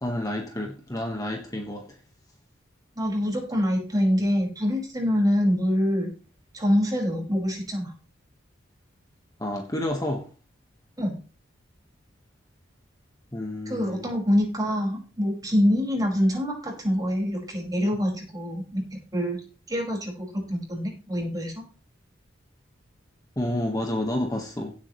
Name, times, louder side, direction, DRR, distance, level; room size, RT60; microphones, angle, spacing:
voice 1, 0.0-2.0 9.4-10.3 13.3-14.1 23.4-24.7, left 1 dB, 20° left, 1.5 m, -30 dB
voice 2, 3.0-6.1 6.5-7.9 11.0-11.2 13.7-19.4 19.7-21.6, equal, 20° right, 5.4 m, -25 dB
17.0 x 8.7 x 3.2 m
head